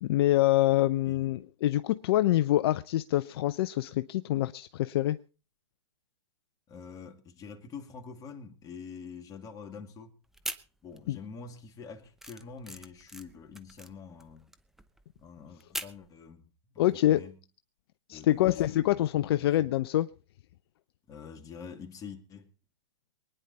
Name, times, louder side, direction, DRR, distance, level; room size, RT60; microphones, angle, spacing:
voice 1, 0.0-5.2 11.1-11.2 16.8-17.3 18.1-20.1, left 14 dB, 50° left, 0.6 m, -26 dB
voice 2, 6.7-10.1 10.8-14.5 15.2-17.4 18.1-19.0 19.4-19.7 21.1-22.5, left 5 dB, 20° left, 2.3 m, -46 dB
sound 1, 10.3-11.2 11.5-16.1, right 1 dB, ahead, 0.9 m, -42 dB
24.0 x 10.0 x 4.2 m
hypercardioid pair, 135°, 16 cm